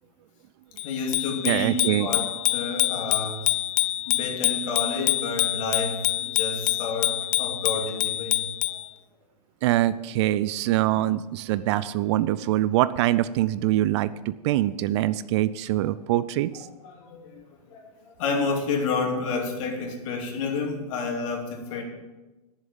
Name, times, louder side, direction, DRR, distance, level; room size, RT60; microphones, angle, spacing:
voice 1, 0.8-3.6 4.0-8.8 16.6-21.8, left 4 dB, 55° left, 1 dB, 2.9 m, -30 dB
Bicycle bell, 0.8-8.9, left 16 dB, 25° left, 0.4 m, -26 dB
voice 2, 1.5-2.1 9.6-16.7, right 14 dB, 45° right, 16 dB, 0.4 m, -24 dB
10.5 x 7.3 x 7.1 m, 1.1 s
hypercardioid pair, 110°, 20 cm